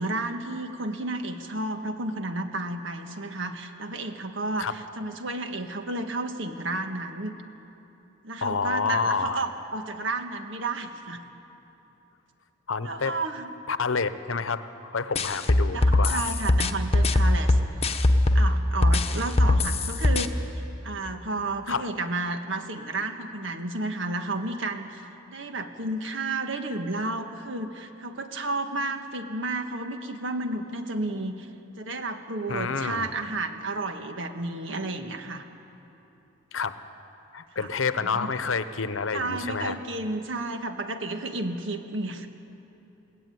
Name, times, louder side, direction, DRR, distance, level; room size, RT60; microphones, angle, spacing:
voice 1, 0.0-7.4 8.2-11.2 12.8-13.5 15.7-17.6 18.3-31.5 31.8-35.5 37.5-37.7 38.0-38.3 39.1-42.3, right 2 dB, 70° right, 6 dB, 1.6 m, -32 dB
voice 2, 8.4-9.4 12.7-13.2 13.7-14.7 14.9-16.2 21.7-21.9 32.5-33.1 36.5-36.8 37.3-39.8, left 5 dB, 80° left, 12 dB, 0.9 m, -28 dB
sound 1, 15.2-18.5 18.8-20.3, left 2 dB, 30° left, 1.0 m, -20 dB
22.0 x 17.0 x 9.4 m, 2.9 s
head